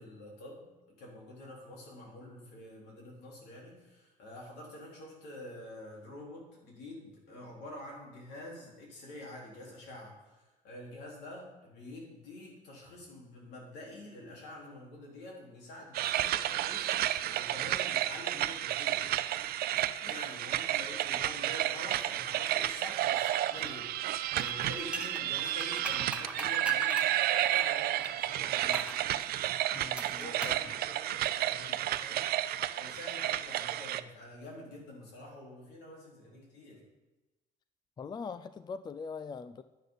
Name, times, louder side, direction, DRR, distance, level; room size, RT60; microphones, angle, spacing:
voice 1, 0.0-19.0 20.0-28.9 29.9-36.8, left 1 dB, 80° left, -3 dB, 3.9 m, -47 dB
sound 1, 15.9-34.0, right 13 dB, 65° right, 0.5 m, -31 dB
sound 2, 24.3-28.1 28.7-29.0 30.0-30.6 30.9-31.0, right 2 dB, 5° right, 1.2 m, -40 dB
voice 2, 29.7-30.6 38.0-39.6, left 5 dB, 25° left, 12 dB, 0.4 m, -42 dB
10.5 x 10.0 x 4.0 m, 1.1 s
cardioid pair, 110°, 17 cm